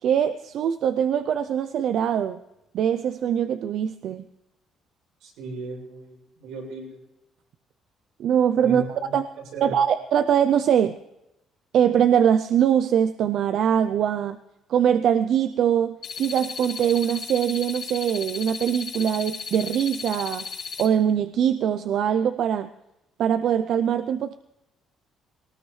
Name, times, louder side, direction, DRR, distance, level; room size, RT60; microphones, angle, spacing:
voice 1, 0.0-2.4 2.7-4.2 8.2-9.3 9.6-11.0 11.7-14.4 14.7-20.5 20.8-22.7 23.2-24.3, right 9 dB, 65° right, 10 dB, 0.5 m, -22 dB
voice 2, 5.2-7.0 8.6-9.1 9.5-9.7, right 3 dB, 90° right, -2 dB, 6.4 m, -36 dB
sound 1, 16.0-20.9, left 5 dB, 65° left, 3.8 m, -35 dB
20.0 x 18.5 x 3.2 m, 0.90 s
cardioid pair, 130°, 0 cm